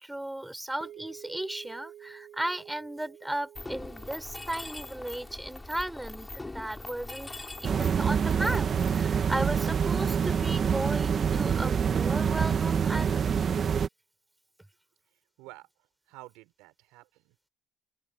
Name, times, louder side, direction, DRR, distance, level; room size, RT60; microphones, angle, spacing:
voice 1, 0.0-13.3, right 1 dB, 10° right, 6.2 m, -35 dB
sound 1, 0.8-9.1, right 11 dB, 60° right, 7.5 m, -52 dB
Mechanisms, 3.6-9.0, left 2 dB, 15° left, 6.2 m, -42 dB
sound 2, 7.6-13.9, right 7 dB, 45° right, 1.5 m, -26 dB
voice 2, 15.1-17.4, right 22 dB, 85° right, 6.5 m, -51 dB
open air
supercardioid pair, 70°, 0 cm